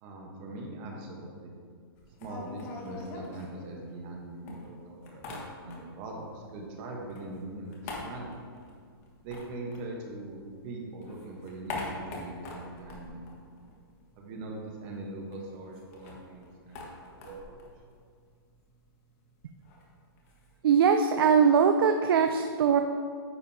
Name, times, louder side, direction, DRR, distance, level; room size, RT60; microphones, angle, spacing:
voice 1, 0.0-1.5 2.2-8.3 9.2-13.3 14.2-17.6, right 2 dB, 30° right, 0 dB, 1.1 m, -41 dB
sound 1, 2.0-4.1 4.5-6.1 6.4-10.5 10.8-14.1 14.4-14.5 14.8-20.6, left 2 dB, 35° left, 1.5 m, -44 dB
voice 2, 20.6-22.8, right 6 dB, 65° right, 6 dB, 0.5 m, -21 dB
9.8 x 7.6 x 2.8 m, 2.1 s
hypercardioid pair, 160°, 13 cm